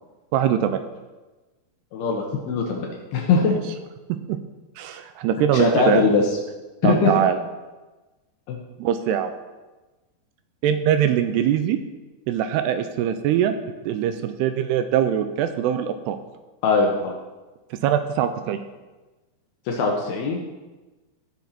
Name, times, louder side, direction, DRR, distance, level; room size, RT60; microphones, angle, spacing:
voice 1, 0.3-0.9 4.3-4.4 4.8-6.0 6.8-7.4 8.8-9.3 10.6-11.8 12.3-13.6 13.9-16.2 17.8-18.6, right 10 dB, 85° right, 9 dB, 2.5 m, -22 dB
voice 2, 1.9-3.5 5.5-6.2 6.8-7.1 8.5-8.6 16.6-17.1 19.7-20.4, left 4 dB, 75° left, 1 dB, 2.7 m, -21 dB
15.0 x 6.4 x 4.3 m, 1.2 s
omnidirectional pair, 5.0 m